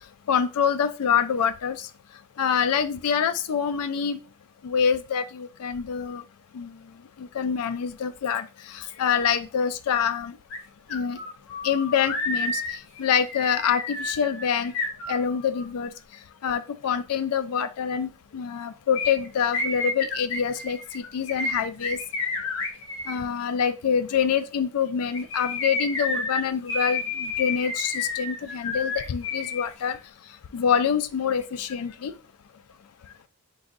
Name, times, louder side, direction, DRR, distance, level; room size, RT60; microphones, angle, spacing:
voice 1, 0.3-1.9 2.4-4.2 4.6-6.2 6.5-6.7 7.2-8.5 8.7-10.3 10.9-11.2 11.6-12.6 13.0-14.7 15.1-15.9 16.4-22.0 23.1-30.0 30.5-32.1, left 7 dB, 80° left, 11 dB, 0.4 m, -26 dB
sound 1, 10.5-10.6 10.9-15.7 18.9-23.2 25.0-29.6 29.9-30.0, left 3 dB, 60° left, 1.0 m, -30 dB
4.7 x 3.9 x 2.5 m, 0.34 s
head